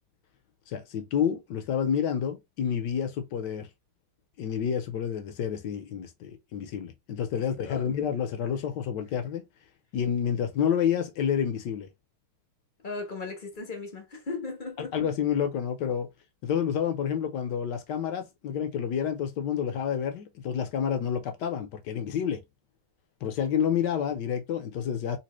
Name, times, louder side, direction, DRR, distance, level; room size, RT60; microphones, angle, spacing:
voice 1, 0.7-3.7 4.4-9.5 9.9-11.9 14.8-16.1 16.4-22.4 23.2-25.2, left 8 dB, 70° left, 1.1 m, -29 dB
voice 2, 7.4-7.9 12.8-15.0, left 3 dB, 50° left, 0.6 m, -37 dB
3.3 x 2.8 x 3.0 m
omnidirectional pair, 2.2 m